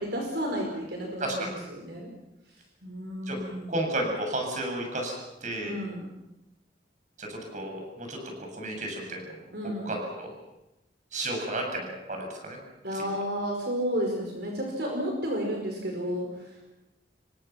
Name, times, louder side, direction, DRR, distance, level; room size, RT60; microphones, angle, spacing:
voice 1, 0.0-2.1 2.8-3.9 5.6-6.0 9.5-9.9 12.8-16.7, equal, 65° right, 1 dB, 5.2 m, -32 dB
voice 2, 1.2-1.5 3.3-3.4 3.7-5.2 5.4-5.8 7.2-9.2 9.9-10.3 11.1-12.6 12.9-13.0, right 1 dB, 45° right, 2 dB, 7.2 m, -32 dB
28.0 x 23.5 x 6.1 m, 0.96 s
head